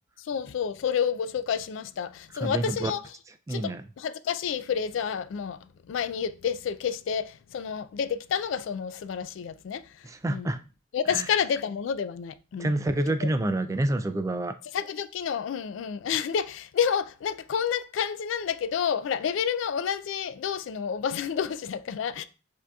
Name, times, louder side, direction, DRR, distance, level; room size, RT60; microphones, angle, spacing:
voice 1, 0.2-3.1 3.5-10.5 10.9-12.7 13.2-13.3 14.7-22.2, left 7 dB, 75° left, 0.3 m, -30 dB
voice 2, 2.4-2.9 3.5-3.8 10.0-10.6 11.1-11.2 12.6-14.5, right 1 dB, 15° right, 0.3 m, -27 dB
7.4 x 2.7 x 2.3 m
head